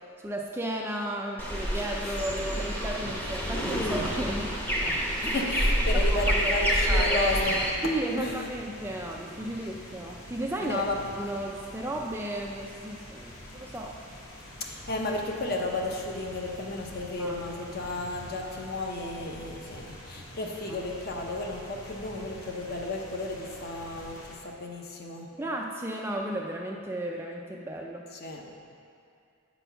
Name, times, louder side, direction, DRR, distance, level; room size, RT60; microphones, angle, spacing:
voice 1, 0.2-4.5 4.8-5.4 5.9-7.2 7.8-10.8 11.1-14.0 17.2-17.7 20.4-20.8 25.4-28.0, right 1 dB, 10° right, 0 dB, 0.3 m, -34 dB
sound 1, 1.4-7.7, equal, 10° left, 0.7 m, -27 dB
voice 2, 5.2-7.6 8.2-8.5 10.6-11.0 14.6-25.3 28.1-28.4, left 2 dB, 45° left, 1 dB, 0.8 m, -33 dB
sound 2, 7.3-24.4, equal, 80° left, 1.4 m, -46 dB
9.1 x 4.2 x 5.5 m, 2.4 s
head